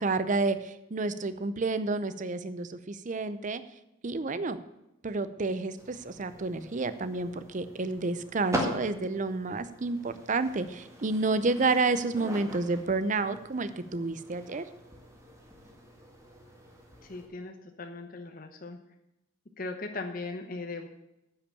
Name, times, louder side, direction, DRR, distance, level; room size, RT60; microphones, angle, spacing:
voice 1, 0.0-3.6 4.0-4.6 5.0-14.6, right 3 dB, 40° right, 13 dB, 0.6 m, -30 dB
sound 1, 5.8-17.2, equal, 15° right, 1.9 m, -41 dB
voice 2, 17.0-18.8 19.6-20.9, left 3 dB, 45° left, 5 dB, 0.9 m, -38 dB
9.8 x 5.9 x 8.5 m, 0.88 s
head